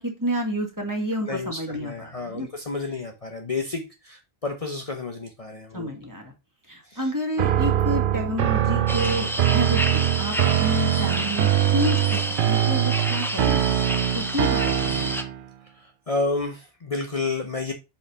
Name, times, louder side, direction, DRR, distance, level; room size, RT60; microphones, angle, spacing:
voice 1, 0.0-2.5 5.7-6.3 6.7-13.8 14.1-15.2, equal, 20° right, 1.8 m, -30 dB
voice 2, 1.3-5.9 6.8-7.1 15.7-17.7, left 3 dB, 35° left, 0.9 m, -30 dB
sound 1, 7.4-15.5, right 11 dB, 60° right, 0.7 m, -23 dB
sound 2, 8.9-15.2, equal, 5° left, 0.7 m, -30 dB
5.6 x 4.4 x 5.3 m
omnidirectional pair, 1.0 m